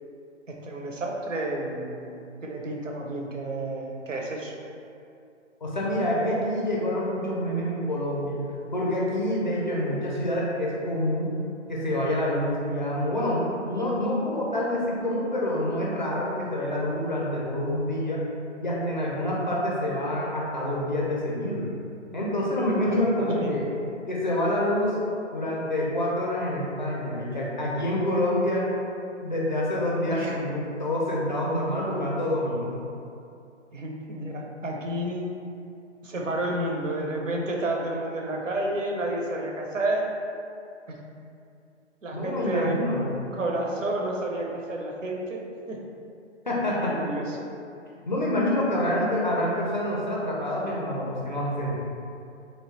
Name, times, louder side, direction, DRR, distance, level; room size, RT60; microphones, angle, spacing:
voice 1, 0.5-4.5 22.8-23.6 30.1-30.4 33.7-35.3 36.0-40.1 42.0-42.8 43.3-45.4 45.7-45.8 46.8-47.5, right 1 dB, 85° right, 0 dB, 0.6 m, -30 dB
voice 2, 5.6-8.4 8.7-11.3 11.7-18.2 18.6-21.7 22.1-23.7 24.1-25.0 25.3-28.7 29.2-32.7 42.1-43.1 46.5-47.0 48.1-51.7, left 1 dB, 40° left, -5 dB, 0.4 m, -27 dB
3.0 x 2.1 x 2.9 m, 2.6 s
figure-of-eight pair, 140°, 37 cm